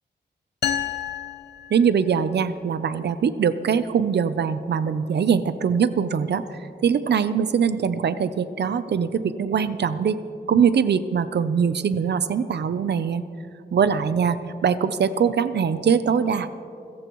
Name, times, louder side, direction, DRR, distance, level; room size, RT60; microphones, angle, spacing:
sound 1, 0.6-2.4, left 9 dB, 65° left, 0.6 m, -30 dB
voice 1, 1.7-6.4 6.8-10.2 10.5-13.2 13.7-14.4 14.6-16.5, right 7 dB, 65° right, 13 dB, 0.6 m, -22 dB
28.0 x 15.0 x 3.1 m, 2.7 s
wide cardioid pair, 175°, 19 cm